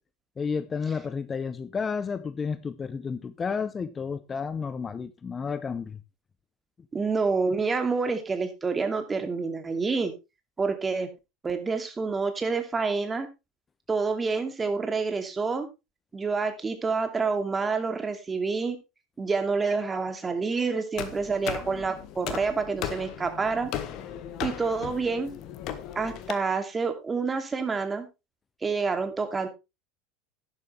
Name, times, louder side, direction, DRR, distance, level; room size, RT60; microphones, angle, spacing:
voice 1, 0.4-6.0, left 5 dB, 25° left, 0.7 m, -31 dB
voice 2, 6.9-10.1 10.6-11.1 11.4-13.3 13.9-15.7 16.1-18.8 19.2-23.7 24.4-25.3 26.0-28.1 28.6-29.5, right 4 dB, 20° right, 2.6 m, -28 dB
sound 1, 21.0-26.3, left 10 dB, 50° left, 1.7 m, -37 dB
12.5 x 10.5 x 3.3 m
figure-of-eight pair, 75°, 0 cm